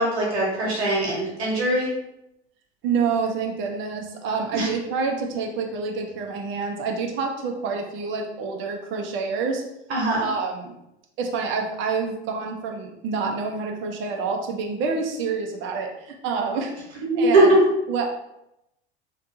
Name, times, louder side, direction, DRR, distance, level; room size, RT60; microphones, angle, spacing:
voice 1, 0.0-1.9 4.5-4.7 9.9-10.3 17.0-17.4, right 2 dB, 70° right, -4 dB, 1.0 m, -22 dB
voice 2, 2.8-9.6 10.2-10.7 11.2-16.7 17.2-17.5 17.9-18.1, right 5 dB, 35° right, 2 dB, 0.6 m, -27 dB
2.6 x 2.3 x 2.6 m, 0.86 s
figure-of-eight pair, 80°, 33 cm